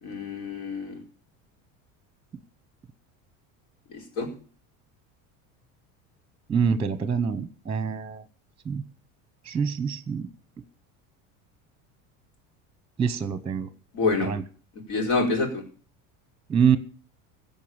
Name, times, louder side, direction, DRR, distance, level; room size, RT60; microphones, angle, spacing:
voice 1, 0.0-1.0 3.9-4.3 13.9-14.3 14.9-15.6, left 3 dB, 75° left, 3 dB, 4.5 m, -27 dB
voice 2, 6.5-8.2 8.7-8.8 9.4-10.3 13.0-13.7 14.2-14.4 16.5-16.8, right 6 dB, 15° right, 14 dB, 0.9 m, -25 dB
15.5 x 5.5 x 8.8 m, 0.41 s
supercardioid pair, 115°, 40 cm